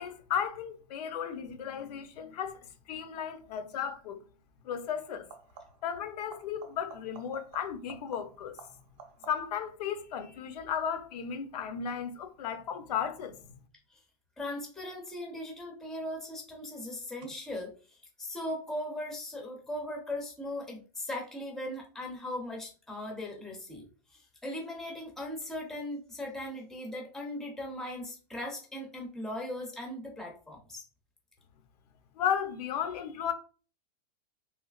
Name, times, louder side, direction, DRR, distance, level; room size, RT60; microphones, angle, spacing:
voice 1, 0.0-4.2 4.6-5.3 5.8-8.6 9.3-13.4 32.2-33.3, left 8 dB, 70° left, 0.6 m, -34 dB
sound 1, 3.7-4.0 5.2-6.0 6.3-9.7 15.1-15.7 17.2-17.3, right 6 dB, 40° right, 0.7 m, -53 dB
voice 2, 14.4-17.7 18.2-23.8 24.1-30.8, left 1 dB, ahead, 0.5 m, -38 dB
3.2 x 3.0 x 2.3 m
supercardioid pair, 160°, 21 cm